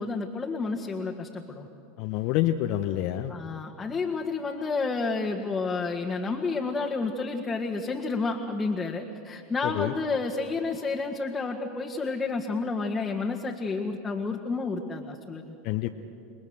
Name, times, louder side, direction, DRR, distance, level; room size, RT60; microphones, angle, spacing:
voice 1, 0.0-1.7 3.3-15.6, left 4 dB, 15° left, 0 dB, 1.9 m, -30 dB
voice 2, 2.0-3.4 9.6-9.9 15.6-15.9, left 14 dB, 55° left, 6 dB, 0.9 m, -27 dB
28.5 x 21.5 x 6.5 m, 2.5 s
hypercardioid pair, 85°, 0 cm